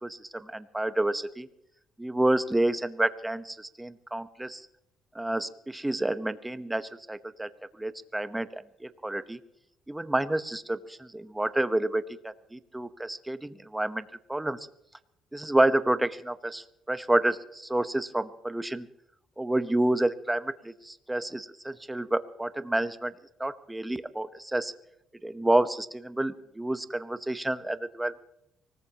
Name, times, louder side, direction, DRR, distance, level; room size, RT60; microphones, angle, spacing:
voice 1, 0.0-1.5 2.0-4.7 5.1-7.5 7.8-9.4 9.9-14.7 15.3-18.9 19.4-23.1 23.4-24.7 25.2-28.2, right 1 dB, 10° right, 13 dB, 1.0 m, -29 dB
25.0 x 19.0 x 2.9 m, 0.81 s
cardioid pair, 110°, 0 cm